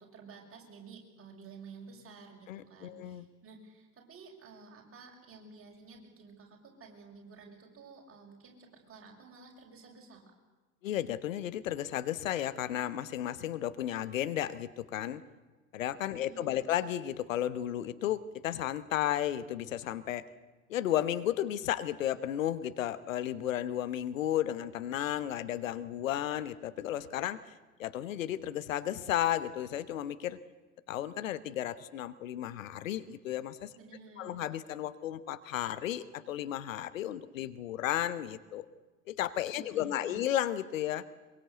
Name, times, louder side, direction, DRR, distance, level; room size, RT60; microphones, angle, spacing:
voice 1, 0.0-10.3 16.1-16.7 33.7-34.4 39.5-40.3, right 4 dB, 30° right, 0 dB, 6.6 m, -52 dB
voice 2, 2.5-3.2 10.8-15.2 15.7-20.3 20.7-27.4 27.8-30.4 30.9-33.7 34.2-38.7 39.1-41.0, left 12 dB, 70° left, 13 dB, 1.1 m, -33 dB
23.0 x 22.5 x 8.2 m, 1.3 s
figure-of-eight pair, 65°, 42 cm